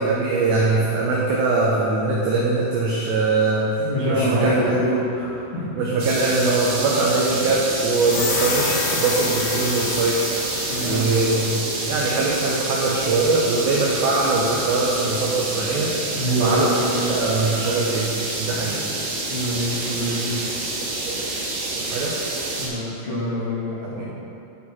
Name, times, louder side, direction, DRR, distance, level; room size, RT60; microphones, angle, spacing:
voice 1, 0.0-3.7 4.1-4.7 5.8-10.2 10.8-15.9 16.4-16.8 17.1-18.1 18.4-18.8 20.9-21.4 21.8-22.1 23.8-24.0, right 3 dB, 90° right, -4 dB, 2.4 m, -22 dB
voice 2, 3.8-5.7 10.7-11.0 16.1-17.2 18.6-18.7 19.3-20.4 22.6-24.1, equal, 65° left, -14 dB, 1.3 m, -25 dB
sound 1, 6.0-22.7, right 2 dB, 70° right, 2.7 m, -28 dB
sound 2, 7.9-11.6, left 4 dB, 85° left, 3.5 m, -29 dB
11.5 x 4.2 x 4.2 m, 2.8 s
omnidirectional pair, 5.9 m